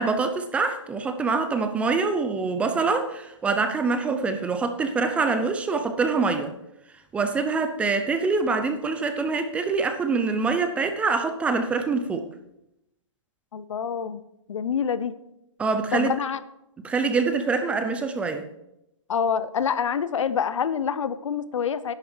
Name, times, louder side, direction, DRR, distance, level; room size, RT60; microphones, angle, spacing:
voice 1, 0.0-6.5 7.1-12.3 15.6-16.1 16.8-18.5, right 4 dB, 5° right, 8 dB, 0.5 m, -25 dB
voice 2, 13.5-14.2 14.5-15.1 15.9-16.4 19.1-21.9, left 7 dB, 70° left, 15 dB, 0.8 m, -26 dB
10.5 x 9.2 x 4.8 m, 0.86 s
hypercardioid pair, 150°, 16 cm